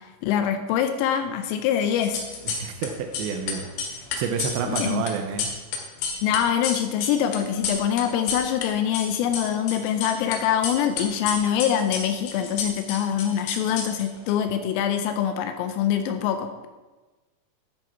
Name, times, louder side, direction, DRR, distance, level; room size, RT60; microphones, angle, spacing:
voice 1, 0.2-2.2 4.6-5.0 6.2-16.7, left 9 dB, 85° left, 8 dB, 3.3 m, -24 dB
sound 1, 1.9-2.9 3.1-8.7 8.9-10.4 10.6-14.3, left 5 dB, 70° left, 3.5 m, -30 dB
voice 2, 2.5-5.5, right 6 dB, 80° right, 4 dB, 2.6 m, -30 dB
11.0 x 10.5 x 4.5 m, 1.2 s
omnidirectional pair, 5.9 m